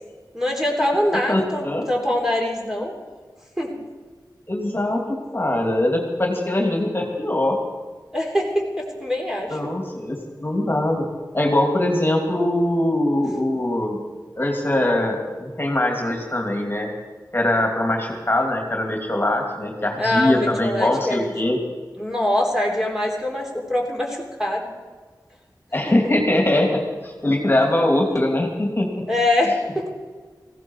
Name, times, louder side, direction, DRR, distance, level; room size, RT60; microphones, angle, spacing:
voice 1, 0.3-2.9 3.6-3.7 8.1-9.6 20.0-21.5 22.0-24.7 29.1-29.9, left 1 dB, 5° right, -1 dB, 3.5 m, -23 dB
voice 2, 1.3-1.9 4.5-5.0 5.3-7.6 9.5-11.1 11.3-14.0 14.4-16.9 17.3-21.6 25.7-28.9, left 1 dB, 30° left, 1 dB, 2.8 m, -22 dB
18.5 x 16.0 x 4.7 m, 1.4 s
wide cardioid pair, 65°, 7 cm